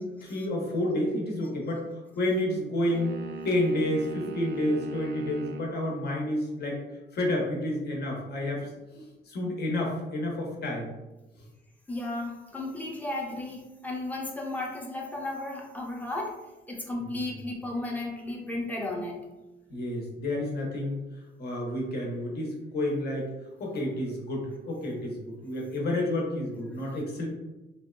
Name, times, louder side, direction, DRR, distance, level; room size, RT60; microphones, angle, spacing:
voice 1, 0.0-3.2 3.4-6.8 7.1-8.7 8.9-11.0 17.0-17.1 19.7-21.0 21.4-23.3 23.6-27.3, left 1 dB, 55° left, -1 dB, 0.8 m, -30 dB
sound 1, 2.9-5.7, right 3 dB, 65° right, 0.4 m, -39 dB
voice 2, 11.9-16.4 16.7-19.2, left 2 dB, 10° left, -2 dB, 0.6 m, -34 dB
2.7 x 2.2 x 2.2 m, 1.0 s
cardioid pair, 90°, 20 cm